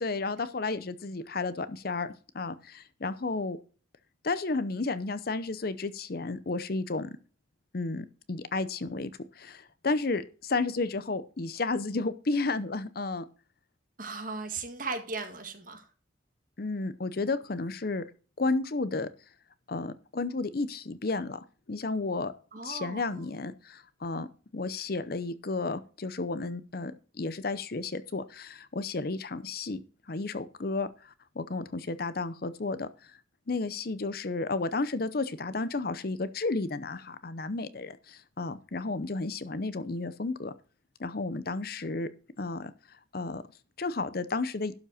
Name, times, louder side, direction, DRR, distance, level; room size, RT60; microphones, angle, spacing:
voice 1, 0.0-3.6 4.2-7.2 7.7-9.1 9.4-13.2 16.6-18.0 18.4-19.1 19.7-21.4 21.7-22.3 22.6-24.3 24.5-29.8 30.1-32.9 33.5-40.5 41.0-42.1 42.4-42.7 43.1-43.4 43.8-44.7, left 3 dB, 50° left, 14 dB, 0.7 m, -32 dB
voice 2, 14.0-15.8 22.5-23.4, right 3 dB, 45° right, 6 dB, 1.7 m, -37 dB
12.0 x 5.3 x 4.9 m, 0.37 s
head